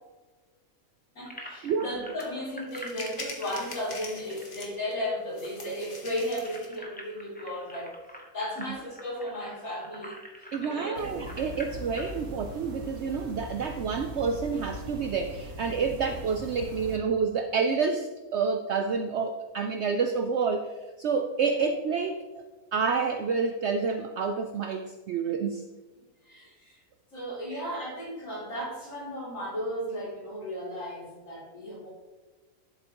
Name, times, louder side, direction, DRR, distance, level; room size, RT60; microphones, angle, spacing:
voice 1, 1.1-8.0 8.3-11.2 15.9-16.0 21.5-21.6 26.2-26.8 27.1-31.9, equal, 65° left, -5 dB, 3.6 m, -35 dB
sound 1, 1.3-5.2 5.4-5.5 5.8-12.2, equal, 5° left, 1.1 m, -46 dB
sound 2, 2.2-2.3 2.7-4.9 5.3-6.8, left 2 dB, 35° left, 1.6 m, -42 dB
voice 2, 10.5-22.4 22.7-25.7 27.5-27.6, right 5 dB, 60° right, 6 dB, 0.8 m, -29 dB
sound 3, 10.9-17.0, right 1 dB, 80° right, 1.6 m, -40 dB
11.5 x 7.8 x 3.0 m, 1.3 s
omnidirectional pair, 1.5 m